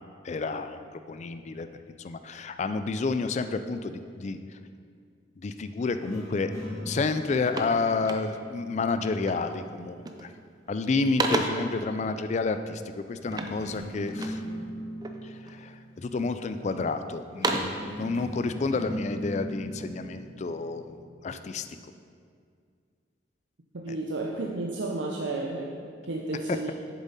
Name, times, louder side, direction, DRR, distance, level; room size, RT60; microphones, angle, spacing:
voice 1, 0.2-1.7 2.0-4.4 5.4-6.5 6.9-10.3 10.7-12.8 13.1-14.7 15.2-21.0 21.2-21.6 23.9-24.0 26.5-26.7, left 4 dB, 40° left, 10 dB, 0.3 m, -30 dB
sound 1, 6.0-9.4 13.2-16.6 17.5-21.4, equal, 20° left, 2.0 m, -39 dB
sound 2, 6.6-6.8 7.1-8.6 9.2-9.6 9.9-10.4 10.7-11.8 13.3-14.5 15.0-15.6 16.2-16.8 17.2-17.9, right 2 dB, 20° right, 0.4 m, -33 dB
voice 2, 23.7-26.7, right 2 dB, 80° right, -1 dB, 0.6 m, -32 dB
7.5 x 7.1 x 4.1 m, 2.2 s
head